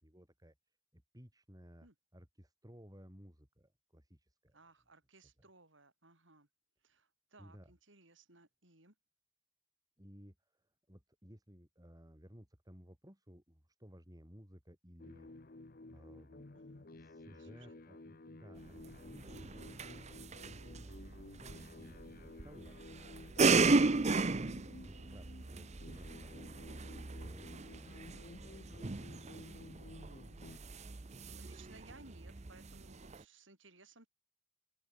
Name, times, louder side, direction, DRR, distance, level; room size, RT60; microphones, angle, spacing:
voice 1, 0.0-4.6 7.4-7.7 10.0-15.5 15.9-16.5 16.9-22.8 24.3-27.9 28.2-30.2, equal, 20° right, 5.1 m, -58 dB
voice 2, 4.5-6.5 6.8-8.9 16.5-16.9 17.4-17.8 30.8-34.1, right 3 dB, 65° right, 6.3 m, -61 dB
sound 1, 15.0-30.6, left 2 dB, 45° left, 1.0 m, -54 dB
sound 2, 18.6-33.2, right 3 dB, 35° right, 0.7 m, -36 dB
head